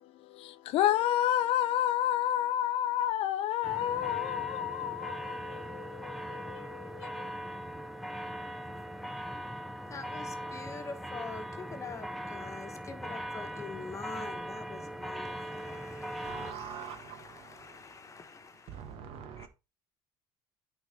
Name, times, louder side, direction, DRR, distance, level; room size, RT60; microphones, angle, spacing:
voice 1, 0.4-7.1, left 12 dB, 65° left, 0.6 m, -30 dB
sound 1, 3.6-16.5, equal, ahead, 0.7 m, -40 dB
voice 2, 9.9-18.9 19.4-19.5, left 4 dB, 30° left, 1.4 m, -45 dB
voice 3, 16.2-17.8 18.7-19.5, right 8 dB, 65° right, 1.3 m, -44 dB
9.0 x 4.2 x 4.4 m
supercardioid pair, 100°, 11 cm